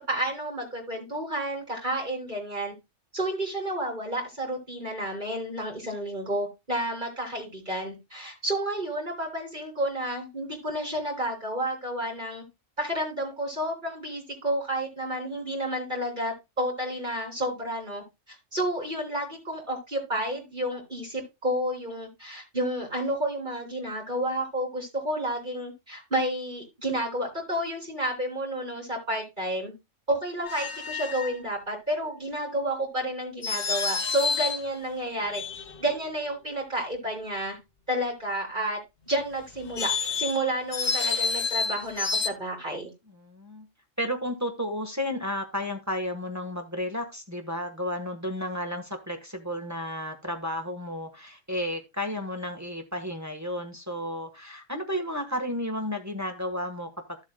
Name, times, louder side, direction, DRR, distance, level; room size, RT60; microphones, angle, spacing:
voice 1, 0.1-2.7 3.1-12.5 12.8-29.7 30.1-35.4 35.8-37.6 37.9-38.8 39.1-42.9, right 1 dB, 40° right, -1 dB, 3.4 m, -31 dB
sound 1, 30.4-31.4 33.4-34.7 35.2-36.0 39.5-42.3, left 5 dB, 60° left, 1.3 m, -29 dB
voice 2, 43.1-43.7 44.0-57.2, left 1 dB, 15° right, 5 dB, 1.3 m, -32 dB
14.0 x 7.2 x 2.2 m, 0.23 s
omnidirectional pair, 1.3 m